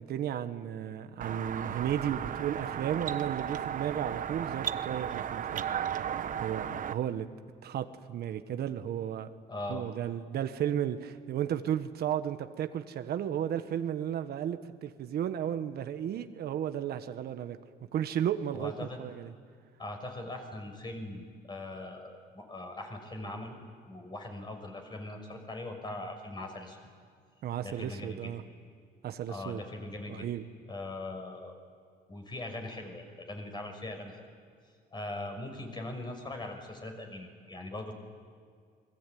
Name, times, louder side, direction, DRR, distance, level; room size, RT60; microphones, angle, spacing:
voice 1, 0.0-5.6 6.4-7.3 7.6-9.3 9.7-17.6 17.9-19.3 27.4-28.4 29.0-29.6 30.1-30.4, right 10 dB, 65° right, 9 dB, 1.4 m, -34 dB
sound 1, 1.2-6.9, right 9 dB, 50° right, 1.1 m, -35 dB
voice 2, 9.5-9.9 18.5-19.0 19.8-26.8 27.6-28.3 29.3-30.3 30.7-31.5 32.1-34.2 34.9-37.9, left 2 dB, 25° left, 4 dB, 6.1 m, -41 dB
29.0 x 22.0 x 9.4 m, 2.1 s
cardioid pair, 110°, 17 cm